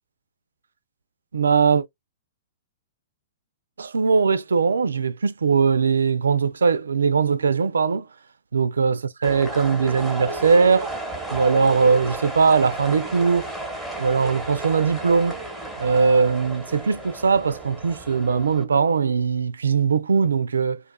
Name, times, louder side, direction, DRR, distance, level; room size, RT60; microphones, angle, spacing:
voice 1, 1.3-1.8 3.8-8.1 8.5-10.9 11.3-13.5 14.0-15.4 15.8-20.8, right 5 dB, 85° right, 0.3 m, -20 dB
sound 1, 9.2-18.6, right 2 dB, ahead, 0.9 m, -33 dB
2.5 x 2.3 x 2.2 m
hypercardioid pair, 125°, 0 cm